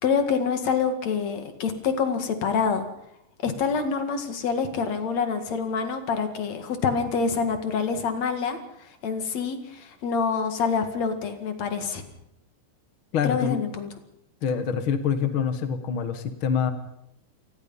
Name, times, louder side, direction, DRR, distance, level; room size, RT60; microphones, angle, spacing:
voice 1, 0.0-2.8 3.4-8.6 9.0-12.0 13.2-13.9, left 5 dB, 50° left, 7 dB, 2.7 m, -26 dB
voice 2, 13.1-13.6 14.4-16.7, left 7 dB, 75° left, 9 dB, 1.2 m, -25 dB
28.5 x 19.5 x 5.6 m, 0.79 s
omnidirectional pair, 4.9 m